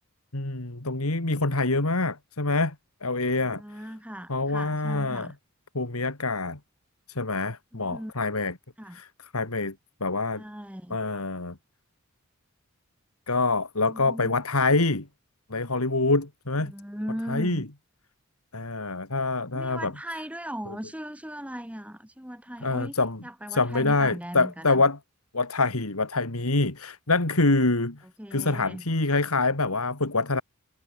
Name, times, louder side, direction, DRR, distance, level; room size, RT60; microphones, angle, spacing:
voice 1, 0.3-2.7 3.0-3.6 4.3-5.3 5.7-6.6 7.1-8.5 8.9-9.1 9.3-9.7 10.0-10.4 10.9-11.6 13.3-15.1 15.5-16.7 17.3-17.6 18.5-19.9 22.6-23.2 23.5-25.0 25.3-28.0 28.3-30.4, left 3 dB, 85° left, 2.7 m, -25 dB
voice 2, 3.4-5.3 7.7-8.1 8.8-9.0 10.3-11.0 13.8-14.4 16.6-17.6 19.5-22.9 23.2-24.8 28.2-28.9, equal, 5° right, 3.8 m, -38 dB
head